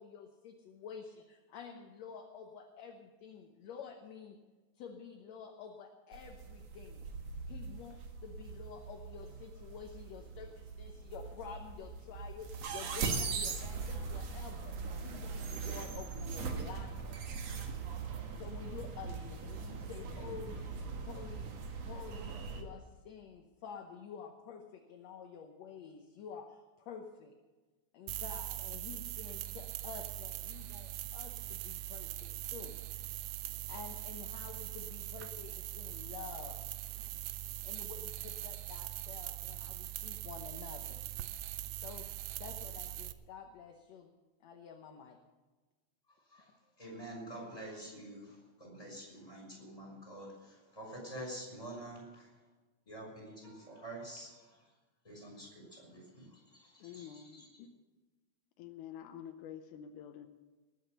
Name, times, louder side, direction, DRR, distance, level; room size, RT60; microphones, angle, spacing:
voice 1, 0.0-4.4 4.8-7.0 7.5-14.7 15.0-17.1 18.1-27.3 27.9-32.7 33.7-36.6 37.6-41.0 41.8-42.1 42.4-44.1 44.4-45.2, left 6 dB, 65° left, 3 dB, 2.1 m, -49 dB
sound 1, 6.1-22.6, right 5 dB, 60° right, 2.5 m, -41 dB
sound 2, 28.1-43.1, right 15 dB, 75° right, 1.7 m, -42 dB
voice 2, 46.8-52.3 52.9-54.4 55.0-56.3 56.5-57.5, right 1 dB, 10° left, -1 dB, 6.0 m, -47 dB
voice 3, 56.8-57.7 58.6-60.3, left 9 dB, 85° left, 7 dB, 2.3 m, -48 dB
19.5 x 8.1 x 6.7 m, 1.2 s
omnidirectional pair, 3.5 m